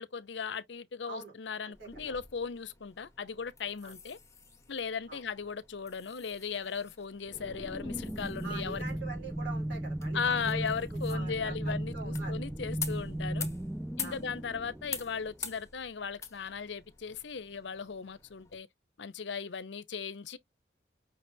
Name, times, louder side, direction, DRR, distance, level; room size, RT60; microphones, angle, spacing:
voice 1, 0.0-4.2 4.7-8.8 10.1-13.5 14.0-18.7 19.0-20.4, left 6 dB, 80° left, 0.6 m, -37 dB
voice 2, 1.6-2.2 3.8-4.0 5.1-5.2 8.4-10.7 10.9-12.4 14.0-14.2, right 4 dB, 80° right, 3.9 m, -44 dB
sound 1, 1.7-18.6, left 6 dB, 15° left, 1.1 m, -47 dB
sound 2, 7.3-15.5, right 1 dB, ahead, 0.3 m, -36 dB
5.7 x 3.3 x 2.7 m
head